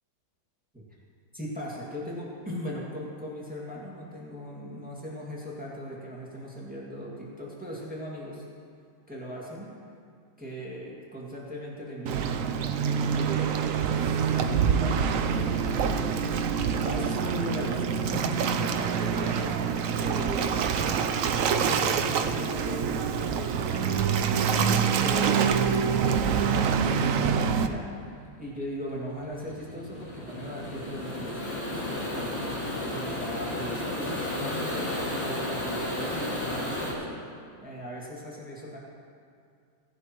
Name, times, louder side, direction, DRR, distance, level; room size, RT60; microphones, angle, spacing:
voice 1, 1.3-8.4 9.1-9.7 10.4-12.8 13.1-25.7 26.2-27.9 28.4-37.1 37.6-38.8, equal, 5° right, -5 dB, 2.0 m, -39 dB
Waves surf, 12.1-27.7, right 7 dB, 70° right, 0.7 m, -26 dB
sound 1, 21.2-36.9, left 1 dB, 35° left, 2.5 m, -34 dB
17.5 x 11.5 x 3.0 m, 2.3 s
omnidirectional pair, 1.9 m